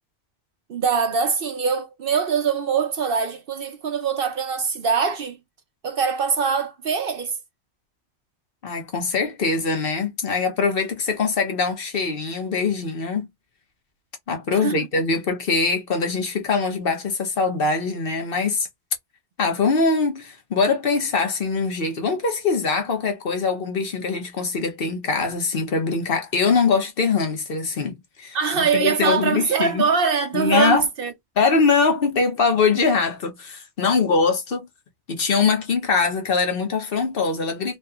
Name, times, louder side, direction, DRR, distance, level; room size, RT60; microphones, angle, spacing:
voice 1, 0.7-5.4 5.8-7.4 14.5-14.9 28.3-31.1, right 6 dB, 55° right, 0.7 m, -23 dB
voice 2, 8.6-13.3 14.3-18.7 19.4-29.8 30.3-30.9 31.4-34.7 35.1-37.8, left 4 dB, 55° left, 1.0 m, -22 dB
3.3 x 2.7 x 2.3 m
omnidirectional pair, 1.2 m